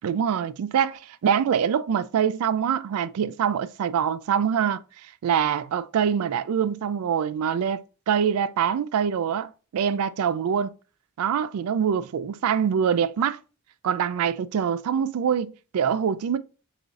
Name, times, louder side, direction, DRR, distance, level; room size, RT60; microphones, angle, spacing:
voice 1, 0.0-4.8 5.2-7.8 8.1-10.7 11.2-13.4 13.8-16.4, right 8 dB, 70° right, 0.3 m, -24 dB
4.8 x 2.6 x 2.4 m
head